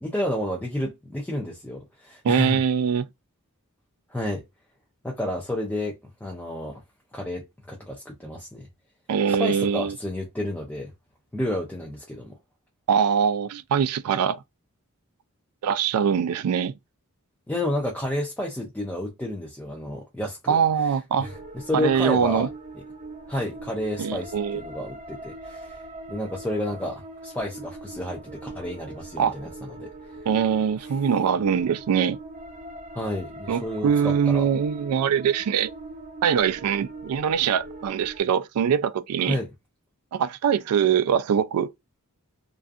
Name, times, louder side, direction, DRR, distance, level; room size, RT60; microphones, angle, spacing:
voice 1, 0.0-2.6 4.1-4.4 5.0-6.0 6.2-6.8 7.1-8.7 9.3-10.9 11.3-12.4 17.5-20.6 20.8-20.9 21.2-22.5 23.3-25.8 26.1-29.9 32.9-34.5 39.2-39.5, left 1 dB, 5° left, 0.4 m, -31 dB
voice 2, 2.2-3.1 9.1-9.9 12.9-14.4 15.6-16.7 20.5-21.3 21.7-22.5 24.0-24.6 29.2-29.3 30.3-32.2 33.5-35.7 36.2-39.4 40.1-41.7, right 7 dB, 80° right, 0.3 m, -23 dB
sound 1, 21.2-38.2, right 2 dB, 35° right, 0.6 m, -41 dB
2.5 x 2.4 x 2.3 m
head